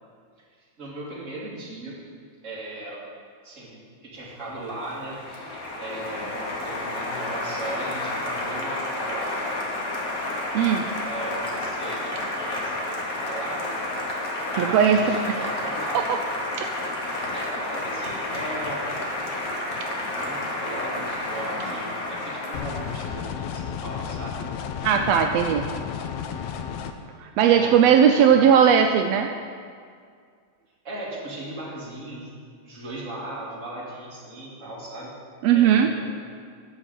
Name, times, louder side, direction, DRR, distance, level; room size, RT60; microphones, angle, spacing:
voice 1, 0.8-2.0 2.4-3.0 3.4-9.6 10.7-14.2 14.5-16.0 17.3-18.9 20.1-24.4 25.9-26.2 27.5-27.7 28.3-28.8 30.8-32.3 32.6-35.1 35.4-36.1, right 1 dB, 25° right, -6 dB, 2.5 m, -37 dB
Applause, 4.3-23.2, left 2 dB, 50° left, 1.1 m, -31 dB
voice 2, 10.5-10.8 14.6-15.5 15.9-16.0 16.6-16.7 24.8-25.6 27.4-29.3 35.4-35.9, right 8 dB, 85° right, 4 dB, 1.5 m, -18 dB
sound 1, 22.5-26.9, left 7 dB, 80° left, 1.8 m, -32 dB
10.5 x 5.4 x 8.2 m, 2.1 s
omnidirectional pair, 3.4 m